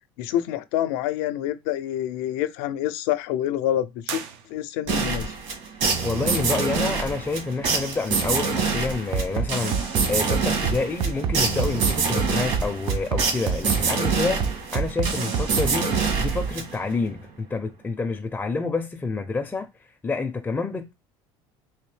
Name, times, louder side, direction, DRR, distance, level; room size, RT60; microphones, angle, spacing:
voice 1, 0.2-4.2 4.5-5.3, left 12 dB, 85° left, 0.4 m, -27 dB
sound 1, 4.0-5.1, right 8 dB, 90° right, 0.6 m, -37 dB
sound 2, 4.9-17.0, right 4 dB, 65° right, 1.8 m, -26 dB
voice 2, 6.0-19.7 20.0-20.9, left 3 dB, 15° left, 0.4 m, -28 dB
Bass drum, 9.1-16.5, right 6 dB, 45° right, 0.4 m, -26 dB
3.5 x 2.7 x 3.2 m
supercardioid pair, 115°, 11 cm